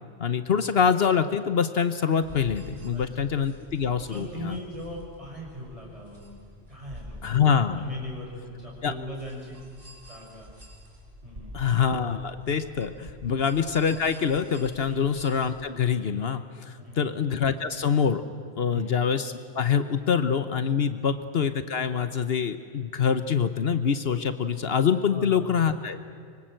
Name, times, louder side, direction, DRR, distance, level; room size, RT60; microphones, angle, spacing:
voice 1, 0.2-4.6 7.2-7.8 8.8-8.9 11.5-18.2 18.6-26.0, left 7 dB, 65° left, 11 dB, 1.2 m, -25 dB
sound 1, 2.2-15.5, equal, 50° right, 5.0 m, -48 dB
voice 2, 2.9-3.3 4.1-6.4 6.7-7.4 7.7-10.5 11.2-11.6 14.9-15.1 16.8-17.1 18.7-19.0 25.1-25.5, equal, 30° right, -2 dB, 6.7 m, -40 dB
25.0 x 24.0 x 7.7 m, 2.2 s
omnidirectional pair, 1.1 m